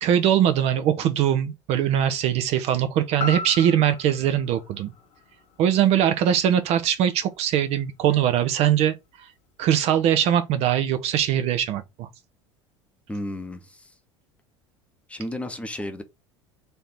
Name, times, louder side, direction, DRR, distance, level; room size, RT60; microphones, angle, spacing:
voice 1, 0.0-4.9 5.6-9.3 9.6-12.1, right 10 dB, 40° right, 0.5 m, -21 dB
sound 1, 3.2-7.3 7.7-7.8, left 3 dB, 45° left, 1.0 m, -37 dB
voice 2, 13.1-13.8 15.1-16.0, left 1 dB, 10° left, 0.7 m, -32 dB
3.4 x 2.8 x 4.2 m
figure-of-eight pair, 70°, 16 cm